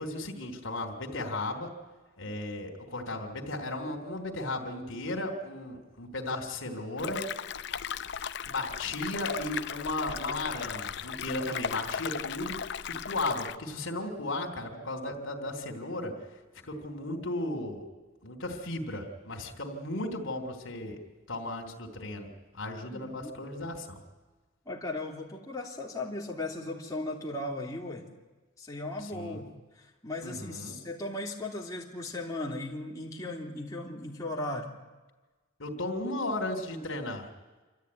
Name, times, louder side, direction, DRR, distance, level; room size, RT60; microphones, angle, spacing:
voice 1, 0.0-1.7 2.2-7.2 8.4-16.1 16.6-17.9 18.2-21.0 21.3-22.3 22.5-24.0 29.0-29.4 30.2-30.8 35.6-37.3, left 2 dB, 75° left, 2 dB, 3.0 m, -35 dB
sound 1, 7.0-13.6, left 7 dB, 55° left, 0.6 m, -36 dB
voice 2, 22.9-23.3 24.6-28.0 28.6-29.5 29.8-34.7, left 2 dB, 15° left, -3 dB, 2.9 m, -37 dB
27.0 x 13.5 x 9.6 m, 1.3 s
head